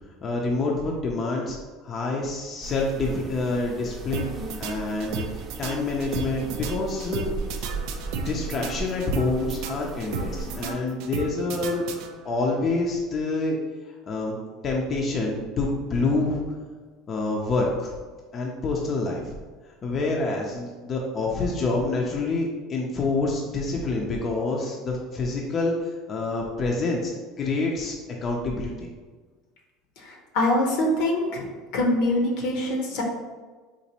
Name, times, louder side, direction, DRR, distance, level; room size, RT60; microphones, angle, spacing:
voice 1, 0.2-1.6 1.8-4.3 4.6-5.3 5.6-7.4 8.2-11.8 12.2-13.6 14.1-14.4 14.6-16.4 17.1-17.9 18.3-19.3 19.8-25.7 26.1-27.1 27.4-27.9 28.2-28.9, left 3 dB, 35° left, -1 dB, 0.5 m, -27 dB
sound 1, 2.6-10.7, right 3 dB, 30° right, 0.6 m, -37 dB
sound 2, 4.1-12.5, right 5 dB, 70° right, 0.3 m, -35 dB
voice 2, 30.0-31.4 31.7-33.0, left 1 dB, 70° left, 1 dB, 0.8 m, -24 dB
4.0 x 2.5 x 2.8 m, 1.4 s
supercardioid pair, 100°, 0 cm